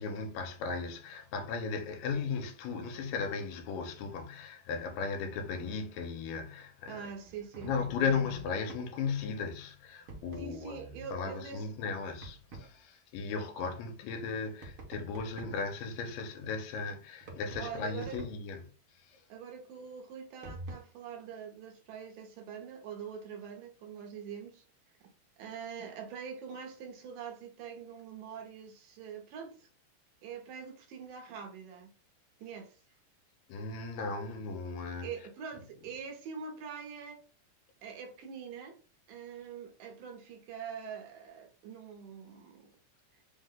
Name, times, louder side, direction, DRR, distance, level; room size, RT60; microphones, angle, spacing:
voice 1, 0.0-7.0 7.6-18.7 19.1-19.2 33.5-35.1, left 5 dB, 85° left, 2.3 m, -36 dB
voice 2, 6.9-7.7 10.4-11.6 17.6-18.2 19.3-24.6 25.0-25.1 25.4-29.7 30.2-31.9 32.4-32.8 35.0-37.2 37.8-38.8 39.1-42.7 43.1-43.2, right 6 dB, 75° right, 2.3 m, -44 dB
sound 1, 7.1-8.9 10.1-10.5 12.2-12.7 14.6-15.7 17.2-18.5 20.4-20.7, right 2 dB, 60° right, 1.5 m, -47 dB
5.4 x 2.1 x 3.7 m
omnidirectional pair, 4.0 m